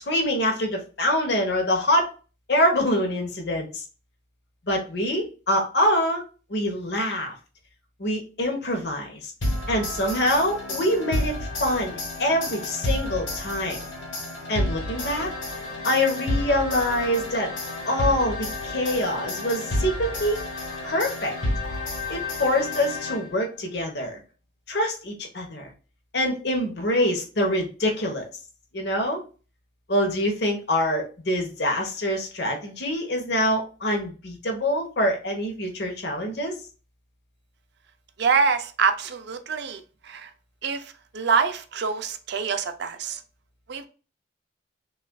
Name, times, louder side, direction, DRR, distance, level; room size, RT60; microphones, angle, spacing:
voice 1, 0.0-2.1 2.5-3.8 4.7-6.2 6.5-7.3 8.0-9.3 9.7-13.8 14.5-15.3 15.8-17.5 17.9-20.4 20.8-21.3 22.1-24.2 24.7-25.7 26.1-28.2 28.7-29.2 29.9-36.5, left 1 dB, 55° left, 1.0 m, -25 dB
sound 1, 9.4-23.5, left 1 dB, 70° left, 1.4 m, -30 dB
voice 2, 38.2-40.3 40.6-43.2 43.7-43.8, right 5 dB, 55° right, 0.4 m, -25 dB
5.5 x 2.4 x 2.2 m
head